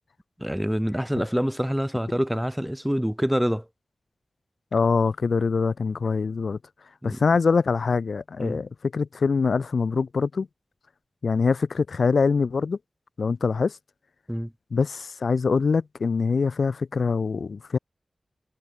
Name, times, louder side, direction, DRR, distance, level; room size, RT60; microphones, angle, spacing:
voice 1, 0.4-3.6 7.0-7.2 8.4-8.6 14.3-14.5, equal, 5° right, 1.2 m, -26 dB
voice 2, 4.7-6.6 7.0-10.5 11.2-12.8 13.2-13.8 14.7-17.8, left 4 dB, 80° left, 0.3 m, -24 dB
wide cardioid pair, 60°, 0 cm